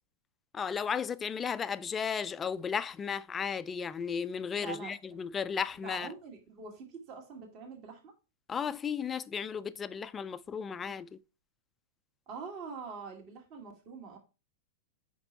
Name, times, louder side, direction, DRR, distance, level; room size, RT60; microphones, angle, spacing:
voice 1, 0.5-6.1 8.5-11.1, left 6 dB, 20° left, 0.4 m, -34 dB
voice 2, 4.5-5.2 5.7-8.1 12.3-14.2, right 5 dB, 40° right, 2.0 m, -44 dB
5.3 x 4.3 x 4.4 m
hypercardioid pair, 130°, 0 cm